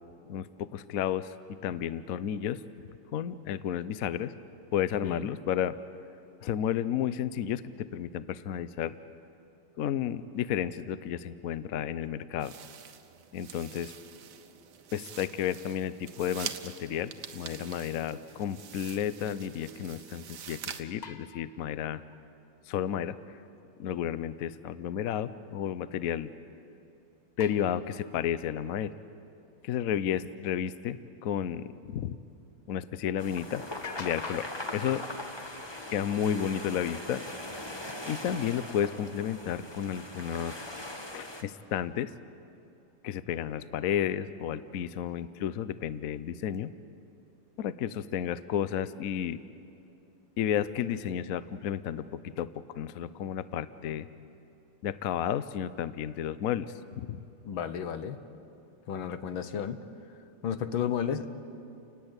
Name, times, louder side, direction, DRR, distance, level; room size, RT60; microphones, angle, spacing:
voice 1, 0.3-2.6 3.1-4.3 4.7-5.8 6.4-8.9 9.8-12.5 13.3-13.9 14.9-22.0 22.7-23.2 23.8-26.3 27.4-28.9 29.6-32.2 32.7-33.6 33.9-35.0 35.9-37.2 38.1-40.6 41.1-42.1 43.0-46.7 47.6-49.4 50.4-54.1 54.8-57.2, left 9 dB, 65° left, 14 dB, 0.9 m, -32 dB
sound 1, 12.4-20.8, right 8 dB, 60° right, 1.5 m, -45 dB
sound 2, 21.0-22.5 27.4-28.5 29.6-29.7 33.4-33.5 33.8-35.0, left 5 dB, 40° left, 0.6 m, -46 dB
sound 3, 33.2-41.4, left 1 dB, 15° left, 1.4 m, -40 dB
voice 2, 57.4-58.2 58.9-59.8 60.4-61.3, left 8 dB, 85° left, 10 dB, 1.9 m, -32 dB
30.0 x 19.0 x 8.1 m, 2.7 s
omnidirectional pair, 2.1 m